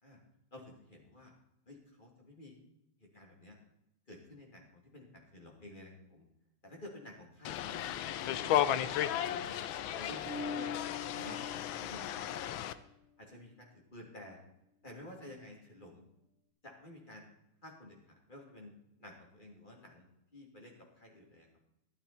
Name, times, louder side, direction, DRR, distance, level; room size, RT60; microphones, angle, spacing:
voice 1, 0.5-1.3 1.7-2.5 3.0-3.6 4.1-6.2 6.6-7.9 8.3-9.6 9.9-10.8 11.1-12.2 13.2-14.4 14.8-16.1 16.6-17.2 17.6-18.7 19.0-20.1 20.3-21.5, left 1 dB, 20° left, 0 dB, 3.0 m, -51 dB
sound 1, 7.4-12.7, left 11 dB, 75° left, 1.4 m, -34 dB
Bass guitar, 10.3-12.7, left 5 dB, 85° right, 2.2 m, -43 dB
12.5 x 12.0 x 4.4 m, 0.83 s
omnidirectional pair, 2.3 m